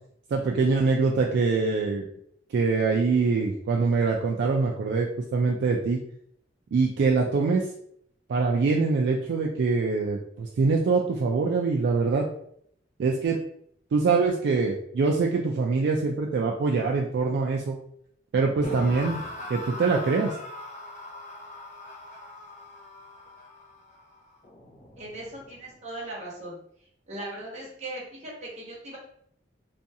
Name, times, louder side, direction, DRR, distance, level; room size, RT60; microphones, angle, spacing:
voice 1, 0.3-2.1 2.5-6.0 6.7-7.7 8.3-12.3 13.0-13.4 13.9-17.8 18.3-19.2 19.5-20.4, right 4 dB, 65° right, 0 dB, 0.3 m, -24 dB
sound 1, 18.6-25.7, left 2 dB, 40° left, 0.5 m, -41 dB
voice 2, 25.0-26.6 27.1-29.0, right 1 dB, 40° right, -4 dB, 1.0 m, -38 dB
2.5 x 2.3 x 2.7 m, 0.67 s
head